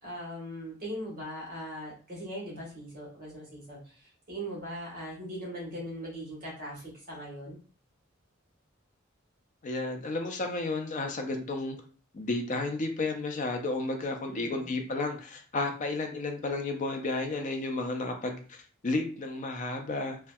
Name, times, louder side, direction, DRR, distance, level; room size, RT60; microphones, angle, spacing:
voice 1, 0.0-7.6 14.3-14.7, equal, 45° right, -5 dB, 1.1 m, -40 dB
voice 2, 9.6-11.8 12.1-20.2, left 2 dB, 40° left, 5 dB, 0.4 m, -32 dB
2.6 x 2.1 x 2.2 m, 0.38 s
head